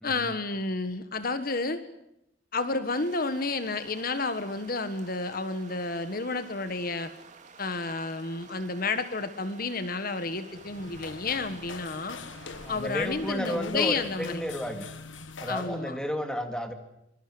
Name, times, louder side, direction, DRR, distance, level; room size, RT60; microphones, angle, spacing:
voice 1, 0.0-1.8 2.5-7.1 7.6-12.2 12.7-14.4 15.5-16.0, left 3 dB, 50° left, 11 dB, 1.5 m, -31 dB
sound 1, 2.9-13.4, right 4 dB, 40° right, 3.2 m, -52 dB
sound 2, 10.5-15.8, left 4 dB, 80° left, 1.6 m, -43 dB
voice 2, 12.6-14.8 15.4-16.7, equal, 5° left, 6 dB, 2.5 m, -32 dB
25.0 x 23.0 x 7.9 m, 0.82 s
head